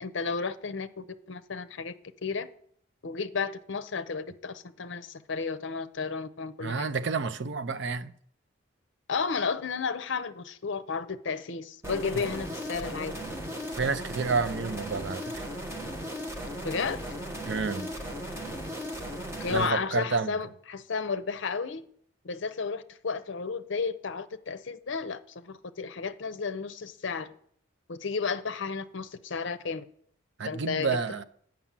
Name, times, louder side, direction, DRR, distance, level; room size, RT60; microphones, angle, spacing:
voice 1, 0.0-1.9 2.2-2.5 3.0-6.9 9.1-13.1 16.6-17.0 19.4-21.8 22.2-27.3 27.9-29.9 30.5-30.9, left 5 dB, 65° left, 0.6 m, -33 dB
voice 2, 6.6-8.1 13.8-15.4 17.5-17.9 19.5-20.3 30.4-31.2, right 4 dB, 60° right, 0.5 m, -30 dB
sound 1, 11.8-19.7, equal, 15° right, 1.2 m, -37 dB
8.4 x 6.1 x 7.4 m
head